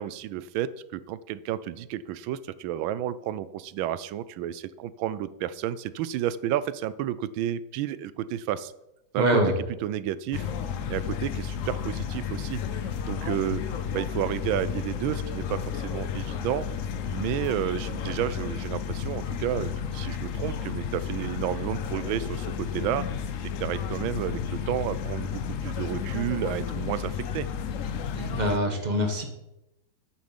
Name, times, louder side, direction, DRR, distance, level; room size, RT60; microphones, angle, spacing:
voice 1, 0.0-8.7 9.1-9.4 9.8-10.5 10.9-16.7 17.1-23.1 23.4-27.5, right 11 dB, 90° right, 16 dB, 1.4 m, -31 dB
voice 2, 9.2-9.5 28.1-29.3, right 1 dB, 25° right, 4 dB, 1.6 m, -24 dB
sound 1, 10.3-28.6, left 7 dB, 65° left, 0.8 m, -32 dB
8.8 x 7.2 x 7.2 m, 0.90 s
omnidirectional pair, 2.1 m